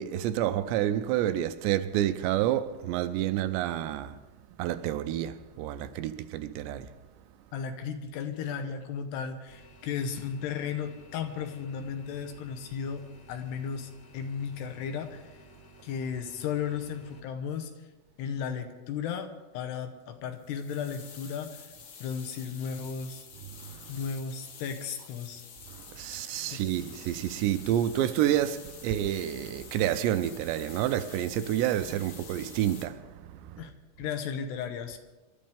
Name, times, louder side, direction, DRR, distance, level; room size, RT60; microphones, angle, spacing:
voice 1, 0.0-4.2 4.6-6.9 23.7-23.9 26.0-33.6, right 12 dB, 85° right, 2.8 m, -29 dB
voice 2, 7.5-15.3 15.8-17.7 18.2-21.7 22.0-23.3 23.9-25.4 26.5-26.6 33.6-33.7 34.0-35.0, left 7 dB, 75° left, 3.0 m, -35 dB
sound 1, 9.5-17.2, right 1 dB, 20° left, 2.6 m, -54 dB
sound 2, 20.4-32.9, left 6 dB, 60° left, 2.2 m, -49 dB
27.0 x 13.0 x 3.5 m
omnidirectional pair, 5.1 m